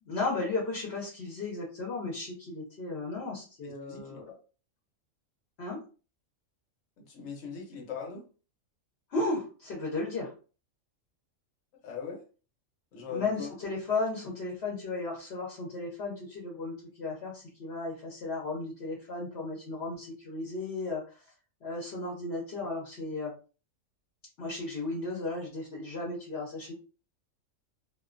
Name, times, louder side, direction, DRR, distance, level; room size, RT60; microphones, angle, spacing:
voice 1, 0.0-4.2 5.6-5.8 9.1-10.3 13.1-21.2 21.6-23.3 24.4-26.7, left 3 dB, 55° left, -3 dB, 1.0 m, -35 dB
voice 2, 3.6-4.2 7.0-8.2 11.8-12.2 12.9-13.5, left 6 dB, 75° left, 0 dB, 1.1 m, -40 dB
2.4 x 2.3 x 2.4 m, 0.36 s
omnidirectional pair, 1.4 m